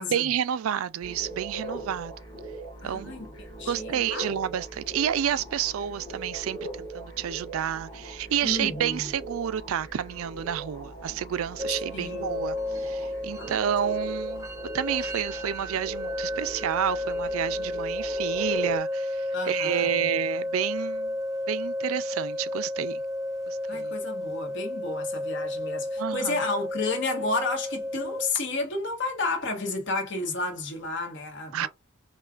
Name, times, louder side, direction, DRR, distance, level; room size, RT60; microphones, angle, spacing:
voice 1, 0.1-2.1 2.8-3.2 3.7-14.5 14.7-21.1 21.5-23.0 23.5-23.9 26.0-26.4 31.5-31.7, right 9 dB, 75° right, 0.3 m, -30 dB
sound 1, 1.0-18.8, right 1 dB, 20° left, 1.3 m, -40 dB
voice 2, 2.8-3.3 3.6-4.3 8.4-9.1 11.9-12.5 13.4-13.6 19.3-20.1 23.7-31.7, left 3 dB, 55° left, 1.2 m, -32 dB
sound 2, 11.6-28.3, left 1 dB, 15° right, 0.6 m, -32 dB
5.4 x 2.3 x 2.4 m
head